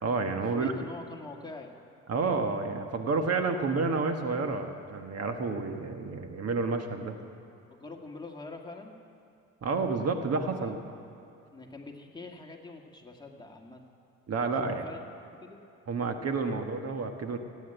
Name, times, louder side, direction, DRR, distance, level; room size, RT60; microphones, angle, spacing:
voice 1, 0.0-0.7 2.1-7.1 9.6-10.8 14.3-14.9 15.9-17.4, right 4 dB, 55° right, 5 dB, 1.5 m, -30 dB
voice 2, 0.5-1.8 7.7-8.9 10.5-10.7 11.5-13.9 14.6-15.0 15.4-15.6, left 3 dB, 15° left, 1 dB, 1.9 m, -44 dB
17.0 x 9.0 x 9.2 m, 2.7 s
cardioid pair, 90°, 30 cm